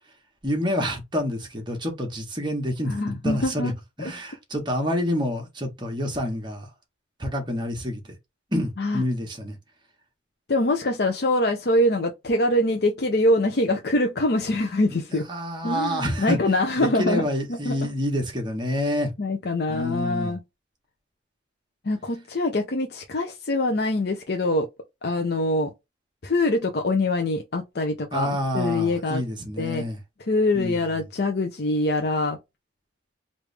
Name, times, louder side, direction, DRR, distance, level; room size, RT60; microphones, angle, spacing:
voice 1, 0.4-3.7 4.0-6.7 7.2-8.0 8.5-9.6 14.9-15.0 15.3-16.4 16.8-19.1 19.7-20.4 28.1-30.0 30.5-30.8, equal, 25° right, 1.2 m, -27 dB
voice 2, 2.9-3.7 4.0-4.1 8.8-9.0 10.5-15.3 15.6-17.9 19.2-20.4 21.8-24.7 25.0-25.7 26.2-29.2 29.6-29.8 30.2-32.4, left 2 dB, 55° left, 0.6 m, -24 dB
3.3 x 2.6 x 3.2 m
head